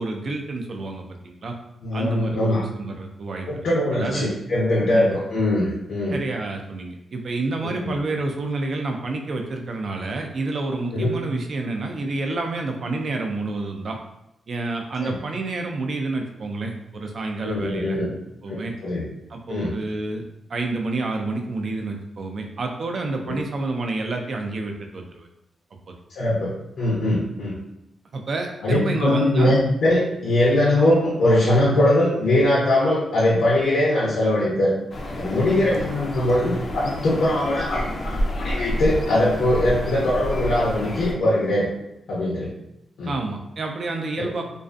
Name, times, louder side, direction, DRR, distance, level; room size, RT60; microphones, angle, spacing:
voice 1, 0.0-1.6 1.9-3.7 3.9-4.4 4.9-5.1 6.1-14.0 14.5-18.0 18.4-18.7 19.3-20.2 20.5-25.3 25.9-26.0 28.1-29.5 35.7-35.9 43.1-44.4, right 3 dB, 55° right, 3 dB, 0.4 m, -29 dB
voice 2, 1.8-2.6 3.5-6.2 7.6-7.9 10.9-11.2 15.0-15.2 17.4-18.1 18.5-19.1 19.5-19.7 23.3-23.4 26.1-27.6 28.6-34.7 35.1-41.7 42.1-42.5 43.0-43.1 44.2-44.3, left 1 dB, 85° left, -6 dB, 0.6 m, -21 dB
sound 1, 34.9-41.1, equal, 45° left, 0.4 m, -29 dB
2.4 x 2.3 x 2.4 m, 0.83 s
cardioid pair, 100°, 0 cm